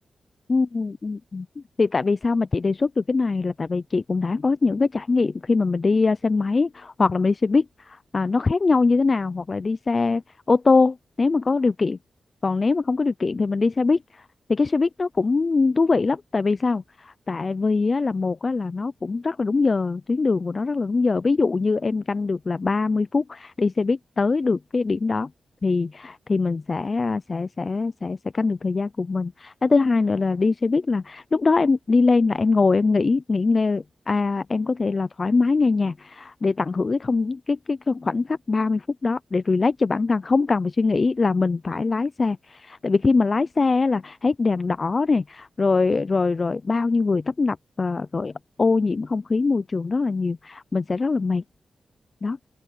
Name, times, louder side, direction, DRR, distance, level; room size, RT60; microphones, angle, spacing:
voice 1, 0.5-1.5 1.8-10.2 10.5-12.0 12.4-14.0 14.5-25.3 25.6-48.3 48.6-51.4 52.2-52.4, left 4 dB, 45° left, 0.5 m, -22 dB
open air
cardioid pair, 60°, 0 cm